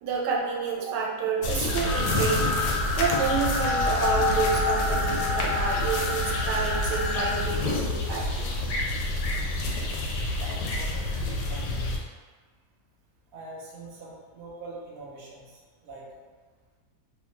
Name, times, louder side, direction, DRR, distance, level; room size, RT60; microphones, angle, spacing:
voice 1, 0.0-2.5 2.9-8.5, right 5 dB, 85° right, -2 dB, 1.2 m, -29 dB
sound 1, 1.4-12.0, left 2 dB, 80° left, 1.1 m, -28 dB
sound 2, 1.8-7.4, left 3 dB, 55° left, 0.7 m, -29 dB
voice 2, 10.4-12.0 13.3-16.3, right 2 dB, 65° right, -5 dB, 0.6 m, -44 dB
2.9 x 2.1 x 3.0 m, 1.4 s
omnidirectional pair, 1.8 m